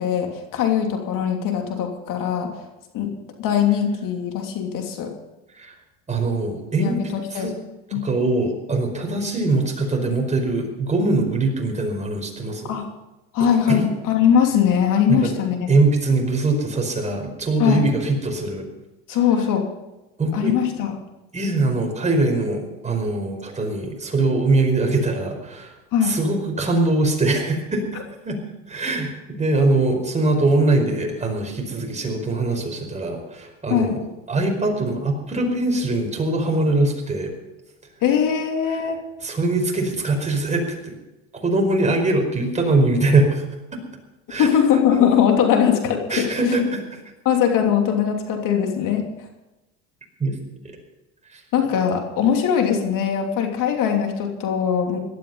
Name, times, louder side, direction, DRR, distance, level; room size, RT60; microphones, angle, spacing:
voice 1, 0.0-2.5 2.9-3.1 3.4-5.1 6.8-7.5 7.9-8.0 12.7-12.9 13.3-15.7 17.6-17.8 19.1-19.6 20.3-20.9 25.9-26.2 33.7-33.9 38.0-39.0 44.4-46.3 47.2-49.0 51.5-55.0, left 8 dB, 55° left, 3 dB, 3.0 m, -20 dB
voice 2, 6.1-7.0 7.3-7.5 7.9-12.8 13.7-13.8 15.1-15.3 15.7-18.7 20.2-20.5 21.3-25.7 26.0-27.8 28.2-28.4 28.7-34.0 34.3-37.3 39.2-40.9 41.4-43.4 43.7-43.8 44.3-44.5 46.1-47.0 50.2-50.3 51.3-51.4, right 2 dB, 20° right, 2 dB, 5.0 m, -22 dB
18.0 x 12.5 x 5.6 m, 1.0 s
supercardioid pair, 100°, 37 cm